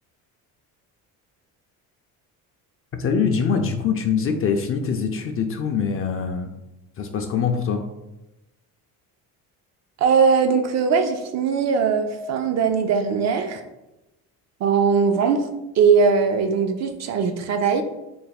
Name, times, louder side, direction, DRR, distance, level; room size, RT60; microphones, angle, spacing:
voice 1, 3.0-6.5 7.0-7.8, left 6 dB, 35° left, 5 dB, 0.4 m, -23 dB
voice 2, 10.0-13.6 14.6-15.5 15.8-17.8, right 5 dB, 45° right, 6 dB, 0.4 m, -20 dB
3.3 x 2.1 x 4.0 m, 0.96 s
cardioid pair, 105°, 38 cm